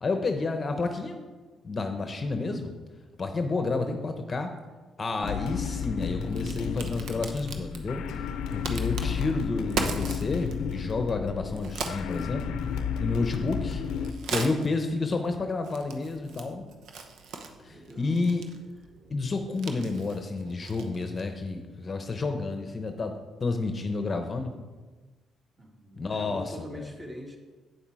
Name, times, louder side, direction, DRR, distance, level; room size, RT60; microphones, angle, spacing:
voice 1, 0.0-1.2 1.6-2.7 3.2-4.5 5.0-8.2 8.5-12.6 13.0-13.8 14.3-16.6 17.6-18.4 19.1-24.5 26.0-26.9, left 3 dB, 35° left, 6 dB, 0.8 m, -30 dB
sound 1, 5.2-14.1, left 7 dB, 85° left, 0.6 m, -32 dB
Crack, 5.9-21.4, right 4 dB, 80° right, 0.9 m, -40 dB
voice 2, 17.7-18.5 25.6-27.4, equal, 20° right, 1 dB, 1.9 m, -44 dB
8.4 x 7.2 x 4.8 m, 1.3 s
cardioid pair, 90°, 0 cm